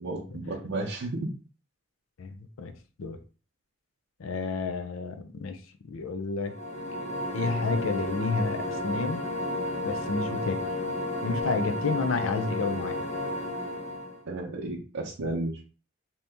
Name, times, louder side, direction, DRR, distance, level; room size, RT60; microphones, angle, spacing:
voice 1, 0.0-1.3 14.3-15.7, right 2 dB, 85° right, 0.6 m, -33 dB
voice 2, 2.2-3.2 4.2-5.6 5.9-6.5 7.3-9.2 9.8-10.6 11.2-13.0, left 4 dB, 75° left, 0.5 m, -30 dB
sound 1, 6.4-14.2, left 1 dB, 35° left, 0.9 m, -32 dB
2.8 x 2.7 x 3.4 m
head